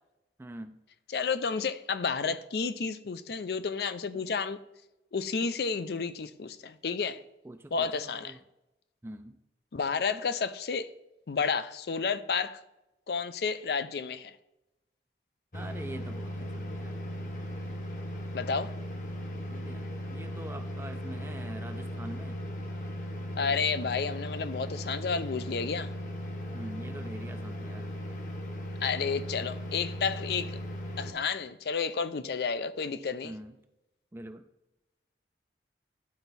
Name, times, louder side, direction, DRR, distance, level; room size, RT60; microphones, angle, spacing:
voice 1, 0.4-0.8 4.1-4.2 7.4-8.4 9.0-9.4 15.5-17.1 19.5-22.4 26.5-27.9 33.2-33.6 34.1-34.4, right 1 dB, 15° right, 0.3 m, -44 dB
voice 2, 1.1-4.6 5.1-7.2 7.7-8.4 9.7-10.9 11.3-12.6 13.1-14.3 18.3-18.7 23.4-25.9 28.8-30.6 31.0-33.3, left 5 dB, 65° left, 0.4 m, -31 dB
sound 1, 15.5-31.1, equal, 45° left, 1.0 m, -37 dB
10.5 x 4.5 x 4.1 m
head